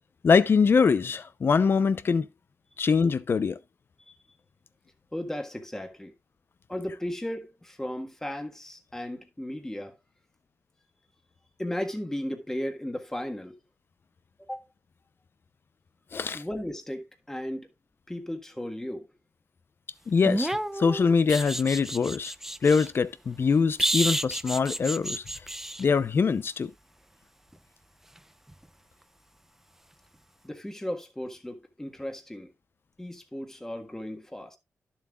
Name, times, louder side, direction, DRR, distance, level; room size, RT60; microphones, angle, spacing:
voice 1, 0.2-2.3 2.8-3.6 16.1-16.4 20.1-22.3 22.6-25.2 25.8-26.7, left 5 dB, 50° left, 0.7 m, -23 dB
voice 2, 5.1-6.1 6.7-9.9 11.6-13.5 14.4-14.6 16.3-17.7 18.1-19.1 30.4-32.5 33.0-34.6, left 1 dB, 10° left, 1.6 m, -35 dB
sound 1, 20.2-22.9 23.8-25.8 28.5-28.6, right 1 dB, 5° right, 0.5 m, -30 dB
12.0 x 7.4 x 2.4 m
cardioid pair, 90°, 5 cm